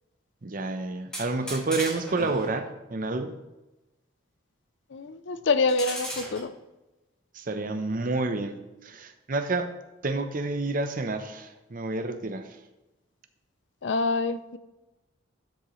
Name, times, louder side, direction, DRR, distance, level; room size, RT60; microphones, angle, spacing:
voice 1, 0.4-3.4 7.3-8.6 8.8-9.7 10.0-12.5, right 3 dB, 40° right, 8 dB, 0.7 m, -29 dB
sound 1, 1.1-2.6 5.7-6.4, equal, 5° left, 1.9 m, -37 dB
voice 2, 4.9-6.5 13.8-14.6, left 3 dB, 60° left, 12 dB, 0.5 m, -26 dB
12.5 x 6.6 x 3.1 m, 1.0 s
head